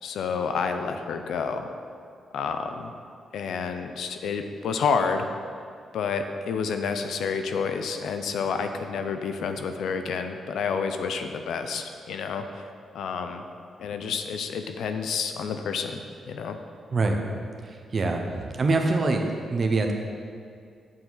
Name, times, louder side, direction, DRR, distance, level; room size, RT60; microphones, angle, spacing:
voice 1, 0.0-1.7 2.3-2.9 3.3-5.3 5.9-12.6 12.9-13.4 13.8-16.6, left 5 dB, 70° left, 7 dB, 0.6 m, -29 dB
voice 2, 16.9-17.3 17.6-19.2 19.5-19.9, right 3 dB, 30° right, 3 dB, 0.8 m, -24 dB
8.9 x 7.1 x 4.0 m, 2.3 s
wide cardioid pair, 170°, 0 cm